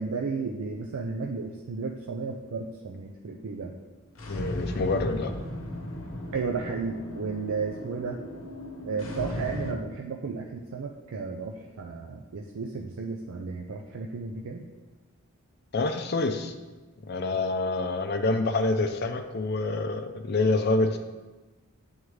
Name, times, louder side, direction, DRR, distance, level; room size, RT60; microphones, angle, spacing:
voice 1, 0.0-3.7 6.3-8.2 8.9-14.7, right 4 dB, 80° right, 1 dB, 0.4 m, -33 dB
sound 1, 4.1-9.7, left 1 dB, 70° left, 0.8 m, -36 dB
voice 2, 4.3-5.3 15.7-16.5 17.1-21.0, left 2 dB, 45° left, 6 dB, 0.4 m, -27 dB
9.2 x 3.6 x 3.2 m, 1.2 s
head